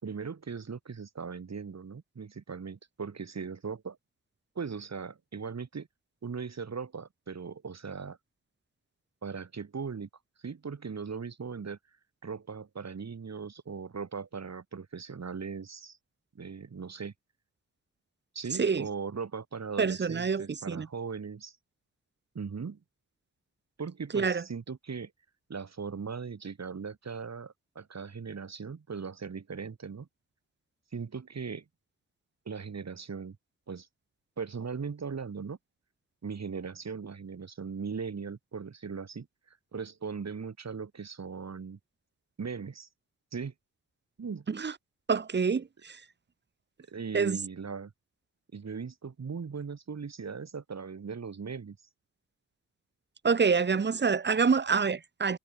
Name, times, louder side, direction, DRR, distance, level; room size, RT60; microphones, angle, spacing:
voice 1, 0.0-4.0 4.6-5.9 6.2-8.2 9.2-10.1 10.4-11.8 12.2-16.0 16.3-17.1 18.3-21.6 22.3-22.8 23.8-25.1 25.5-30.1 30.9-31.6 32.5-33.4 33.7-33.9 34.4-35.6 36.2-41.8 42.4-42.9 43.3-43.5 44.2-44.5 46.9-47.9 48.5-51.8, right 5 dB, 50° right, 4.0 m, -39 dB
voice 2, 19.8-20.9 24.1-24.4 44.5-44.7 45.1-46.0 47.1-47.4 53.2-55.4, right 5 dB, 30° right, 0.9 m, -27 dB
cardioid pair, 55°, 33 cm